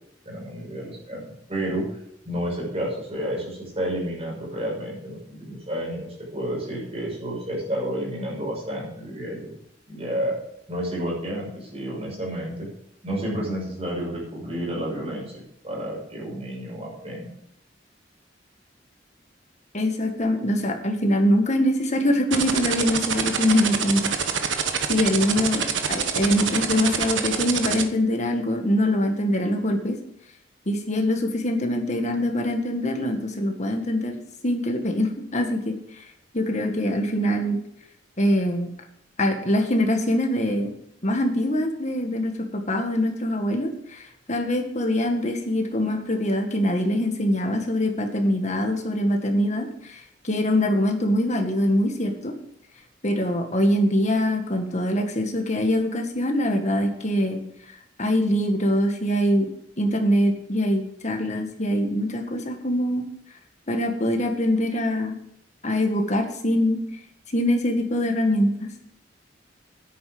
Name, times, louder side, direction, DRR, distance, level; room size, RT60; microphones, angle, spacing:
voice 1, 0.2-9.5 9.9-10.4 10.7-12.7 13.0-17.3, equal, 35° right, -2 dB, 6.2 m, -30 dB
voice 2, 19.7-24.1 24.9-30.0 30.7-35.8 36.3-37.6 38.2-38.7 39.2-40.7 41.0-52.4 53.0-57.4 58.0-59.5 59.8-63.1 63.7-65.2 65.6-66.8 67.3-68.7, left 1 dB, 40° left, 4 dB, 1.8 m, -23 dB
sound 1, 22.3-27.8, right 7 dB, 90° right, 1.3 m, -25 dB
10.5 x 8.8 x 6.2 m, 0.74 s
head